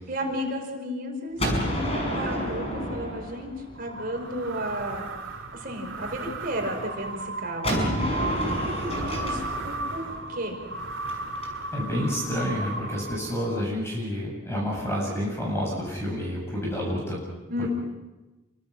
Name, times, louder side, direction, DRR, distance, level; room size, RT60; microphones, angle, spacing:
voice 1, 0.1-3.5 3.8-5.0 5.5-10.6 17.5-17.7, equal, 50° right, 2 dB, 5.1 m, -33 dB
Gunshot gunfire, 1.4-4.2 7.6-11.5, equal, 30° left, 6.1 m, -30 dB
sound 1, 3.8-13.5, right 2 dB, 85° right, 2.4 m, -35 dB
voice 2, 8.7-9.1 11.7-17.2 17.6-17.7, equal, 15° left, -3 dB, 7.9 m, -29 dB
28.5 x 24.5 x 6.2 m, 1.1 s
head